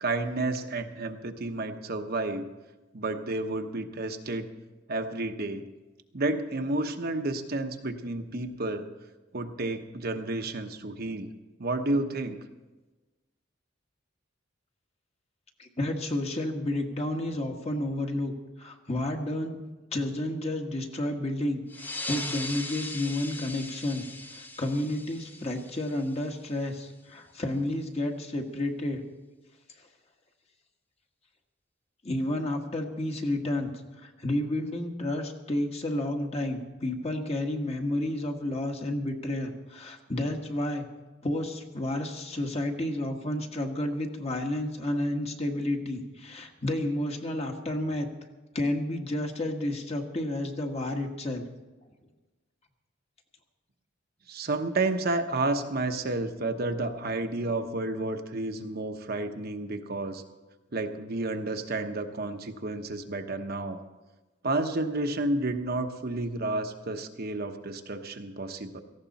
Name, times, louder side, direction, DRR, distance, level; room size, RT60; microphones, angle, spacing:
voice 1, 0.0-2.5 2.9-4.5 4.9-5.7 6.1-8.9 9.3-11.3 11.6-12.4 54.3-60.2 60.7-63.8 64.4-68.8, right 2 dB, 50° right, 5 dB, 1.0 m, -31 dB
voice 2, 15.6-18.3 18.6-24.1 24.3-29.0 32.0-33.7 34.0-40.9 41.2-48.1 48.5-51.4, left 1 dB, 35° left, 3 dB, 1.5 m, -31 dB
sound 1, 21.7-26.8, left 2 dB, 10° left, 0.8 m, -39 dB
17.5 x 15.0 x 4.1 m, 1.2 s
head